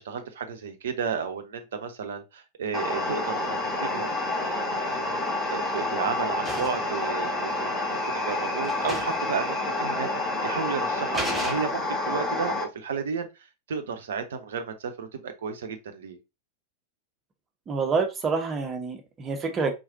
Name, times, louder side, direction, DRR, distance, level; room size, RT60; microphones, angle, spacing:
voice 1, 0.0-5.1 5.5-13.3 13.7-16.2, right 6 dB, 60° right, 0.8 m, -33 dB
sound 1, 2.7-12.6, left 2 dB, 20° left, 2.4 m, -29 dB
sound 2, 4.7-5.2 5.6-6.9 7.8-7.9 8.3-8.4 8.6-9.3 9.6-9.7 10.5-10.6 11.1-12.1, right 1 dB, 5° right, 2.2 m, -36 dB
voice 2, 17.7-19.7, right 4 dB, 25° right, 1.2 m, -27 dB
4.8 x 3.9 x 2.6 m
figure-of-eight pair, 90°, 0 cm